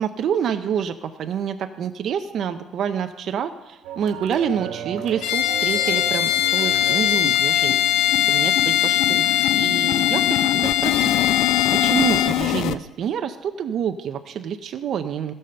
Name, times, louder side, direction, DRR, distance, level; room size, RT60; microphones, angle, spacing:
voice 1, 0.0-7.8 8.3-9.3 9.5-11.1 11.7-15.3, right 8 dB, 55° right, 8 dB, 0.5 m, -27 dB
sound 1, 3.8-8.2, right 8 dB, 85° right, 1.4 m, -36 dB
Bowed string instrument, 5.2-12.4, left 12 dB, 85° left, 0.8 m, -21 dB
sound 2, 5.5-5.6 5.9-6.0 6.4-6.5 6.8-12.8, left 13 dB, 70° left, 0.4 m, -26 dB
15.0 x 5.5 x 6.7 m, 1.1 s
cardioid pair, 125°, 0 cm